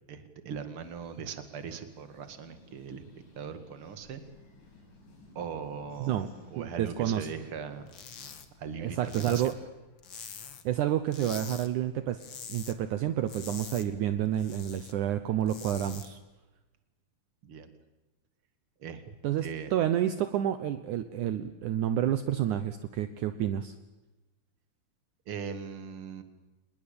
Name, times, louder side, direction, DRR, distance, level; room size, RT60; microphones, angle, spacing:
voice 1, 0.1-4.2 5.3-7.9 8.6-9.6 17.4-17.7 18.8-19.1 19.4-19.7 25.3-26.2, right 6 dB, 45° right, 9 dB, 2.6 m, -40 dB
sound 1, 0.8-9.7, left 2 dB, 70° left, 7.4 m, -58 dB
voice 2, 6.6-7.3 8.8-9.5 10.6-12.2 12.5-16.2 19.2-23.7, right 11 dB, 70° right, 10 dB, 2.3 m, -29 dB
sound 2, 7.9-8.5 8.7-10.7 11.1-11.7 12.0-12.8 13.1-14.9 15.3-16.1, left 7 dB, 45° left, 1.9 m, -45 dB
26.5 x 21.0 x 8.7 m, 1.1 s
omnidirectional pair, 3.9 m